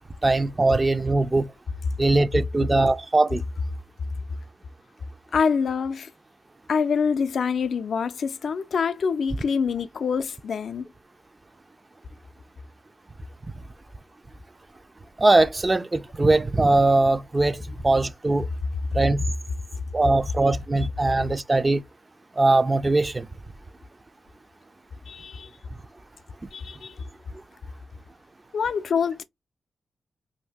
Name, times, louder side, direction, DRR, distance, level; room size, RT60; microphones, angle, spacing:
voice 1, 0.2-1.5 2.0-3.4 15.2-18.5 18.9-19.2 19.9-21.8 22.4-23.3, right 2 dB, 30° right, 0.4 m, -21 dB
voice 2, 5.3-6.1 6.7-10.9 25.1-25.5 26.5-26.9 28.5-29.2, left 6 dB, 75° left, 0.4 m, -25 dB
2.6 x 2.5 x 3.4 m
cardioid pair, 65°, 0 cm